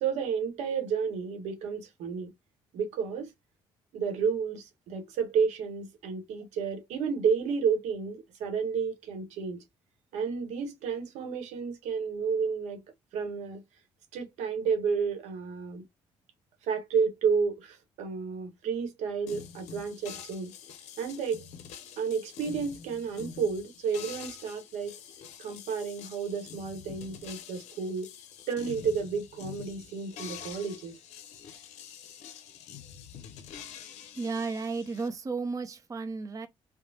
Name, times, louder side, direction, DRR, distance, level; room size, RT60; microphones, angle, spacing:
voice 1, 0.0-2.3 2.7-3.3 3.9-9.6 10.1-12.8 13.1-13.6 14.1-15.8 16.6-20.5 21.0-21.4 22.0-25.0 25.4-28.1 28.5-30.9, right 6 dB, 75° right, 0.8 m, -31 dB
sound 1, 19.3-35.1, left 8 dB, 75° left, 0.6 m, -46 dB
voice 2, 34.2-36.5, right 4 dB, 30° right, 0.5 m, -33 dB
3.0 x 2.0 x 2.6 m
supercardioid pair, 55°, 12 cm